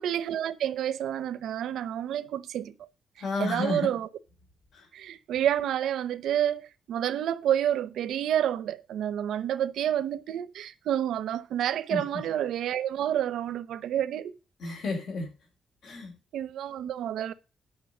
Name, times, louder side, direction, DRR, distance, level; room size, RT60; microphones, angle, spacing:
voice 1, 0.0-2.7 3.4-4.1 4.9-6.6 6.9-14.4 16.3-17.3, right 10 dB, 90° right, 0.8 m, -29 dB
voice 2, 3.2-3.9 4.7-4.9 11.9-12.2 14.6-15.3 15.8-16.2, left 3 dB, 65° left, 4.7 m, -32 dB
10.5 x 5.8 x 6.6 m
cardioid pair, 150°, 0 cm